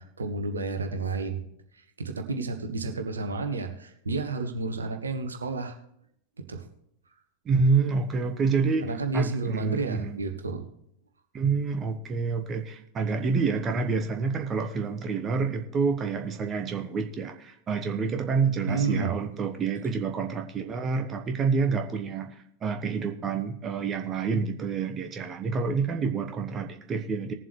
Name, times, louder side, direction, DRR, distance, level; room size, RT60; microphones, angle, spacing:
voice 1, 0.0-1.5 1.7-5.7 6.4-6.6 8.8-10.6 18.7-19.1, right 3 dB, 75° right, 5 dB, 1.3 m, -31 dB
voice 2, 7.4-10.2 11.3-27.3, right 5 dB, 25° right, 6 dB, 1.0 m, -28 dB
19.5 x 7.6 x 3.2 m, 0.73 s
figure-of-eight pair, 90°, 0 cm